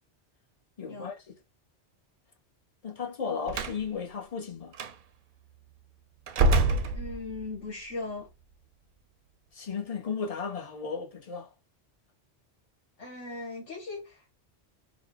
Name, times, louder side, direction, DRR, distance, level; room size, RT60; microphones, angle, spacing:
voice 1, 0.8-1.3 2.8-4.8 9.5-11.5, left 5 dB, 40° left, 0.7 m, -35 dB
Slam, 3.5-3.8 4.7-4.9 6.3-7.5, right 2 dB, 60° right, 0.6 m, -25 dB
voice 2, 6.9-8.3 13.0-14.3, left 3 dB, 80° left, 1.5 m, -38 dB
3.4 x 2.1 x 3.7 m
omnidirectional pair, 1.2 m